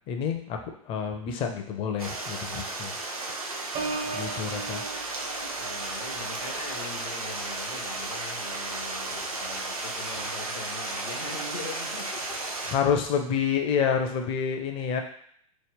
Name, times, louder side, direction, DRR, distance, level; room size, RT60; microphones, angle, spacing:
voice 1, 0.1-0.6 0.9-3.0 4.1-4.8 12.7-15.0, left 7 dB, 30° left, 5 dB, 0.5 m, -28 dB
Stream, 2.0-12.7, right 2 dB, 80° right, 0.6 m, -34 dB
Piano, 3.7-9.4 9.8-10.2, right 4 dB, 30° right, 0.5 m, -40 dB
voice 2, 4.0-4.7 5.4-12.4, left 3 dB, 80° left, 1 dB, 0.8 m, -41 dB
2.9 x 2.1 x 3.6 m, 0.63 s
figure-of-eight pair, 95°, 18 cm